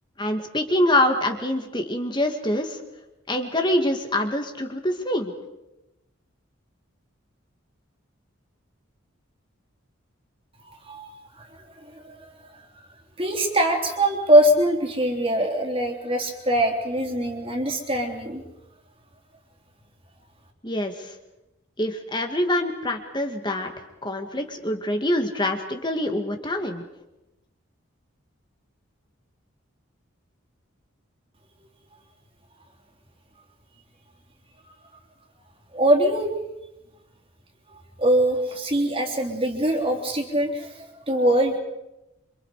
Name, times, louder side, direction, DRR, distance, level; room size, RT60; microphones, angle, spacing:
voice 1, 0.2-2.8 3.3-5.3 20.6-21.1 21.8-23.7 24.0-26.8, left 1 dB, 20° left, 5 dB, 2.3 m, -25 dB
voice 2, 10.6-11.1 11.3-11.5 11.8-12.3 13.2-18.4 35.7-36.3 38.0-41.6, right 1 dB, 25° right, 2 dB, 3.6 m, -22 dB
28.0 x 26.5 x 5.0 m, 0.94 s
head